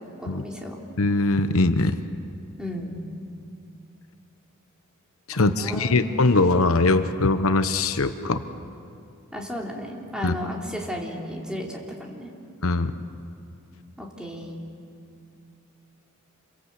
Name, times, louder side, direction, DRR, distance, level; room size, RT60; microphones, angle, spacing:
voice 1, 0.0-0.8 2.6-3.0 5.3-6.2 9.3-12.3 14.0-14.6, equal, 5° right, -2 dB, 3.2 m, -34 dB
voice 2, 1.0-2.0 5.3-8.4 10.2-10.3 12.6-12.9, left 2 dB, 75° left, 10 dB, 1.0 m, -21 dB
28.0 x 22.5 x 8.2 m, 2.5 s
head